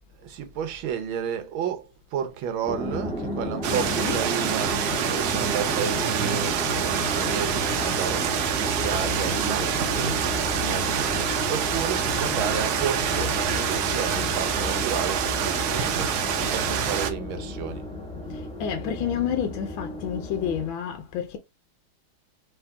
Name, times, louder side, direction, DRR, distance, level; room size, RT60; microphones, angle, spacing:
voice 1, 0.1-17.9, right 8 dB, 85° right, 1.7 m, -32 dB
sound 1, 2.7-20.7, left 1 dB, 5° left, 0.8 m, -33 dB
sound 2, 3.6-17.1, right 8 dB, 65° right, 1.0 m, -26 dB
voice 2, 3.7-4.3 18.3-21.4, left 8 dB, 80° left, 1.5 m, -30 dB
4.8 x 2.9 x 3.5 m
omnidirectional pair, 2.2 m